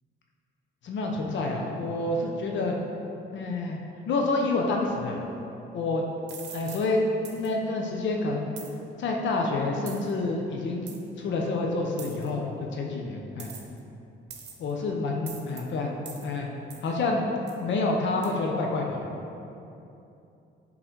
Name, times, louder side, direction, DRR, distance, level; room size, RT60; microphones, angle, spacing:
voice 1, 0.8-2.8 3.3-5.2 5.7-6.0 6.5-8.5 9.0-10.8 11.2-13.5 14.6-15.9 16.2-16.5 16.8-17.2 17.6-19.1, left 3 dB, 70° left, 0 dB, 0.8 m, -28 dB
sound 1, 6.3-6.9 7.2-7.5 8.6-8.7 9.9-10.1 10.9-11.0 12.0-12.3 13.4-13.8 14.3-14.7 15.3-15.6 16.1-16.3 16.7-16.9 17.5-17.6 18.2-18.3, right 6 dB, 60° right, 1.0 m, -43 dB
7.7 x 3.9 x 4.6 m, 2.8 s
cardioid pair, 90°, 20 cm